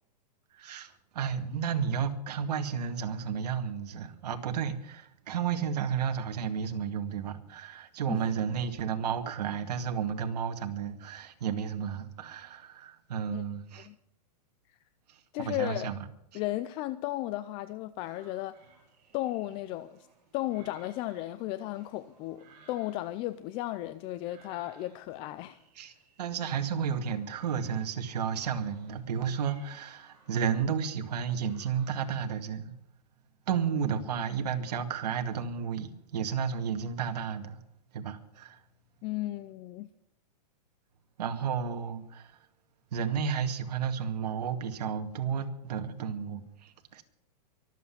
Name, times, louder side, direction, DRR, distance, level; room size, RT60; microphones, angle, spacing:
voice 1, 0.5-13.9 15.1-16.0 25.8-32.7 33.5-37.6 37.9-38.6 41.2-42.4 42.9-47.0, right 7 dB, 75° right, 2.2 m, -32 dB
voice 2, 15.3-15.9 16.3-18.5 19.1-20.0 20.3-25.6 39.0-39.9, left 15 dB, 25° left, 0.5 m, -35 dB
sound 1, 18.0-32.3, right 4 dB, 30° right, 6.9 m, -61 dB
24.0 x 8.3 x 5.9 m
supercardioid pair, 160°, 21 cm